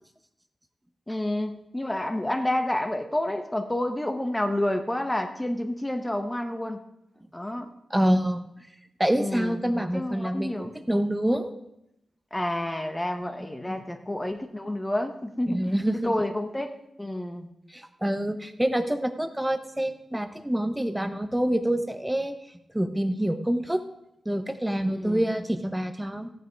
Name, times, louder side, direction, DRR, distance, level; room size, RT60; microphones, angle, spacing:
voice 1, 1.1-6.8 7.3-7.7 9.1-9.6 9.9-10.7 12.3-15.6 16.0-16.7 17.0-17.5 24.9-25.3, left 1 dB, 15° left, 6 dB, 1.1 m, -29 dB
voice 2, 7.9-8.4 9.0-11.5 13.6-13.8 15.5-16.1 17.7-22.3 22.7-23.8 24.2-26.3, right 1 dB, 10° right, 9 dB, 1.1 m, -26 dB
14.5 x 9.3 x 4.7 m, 0.84 s
cardioid pair, 85°, 0 cm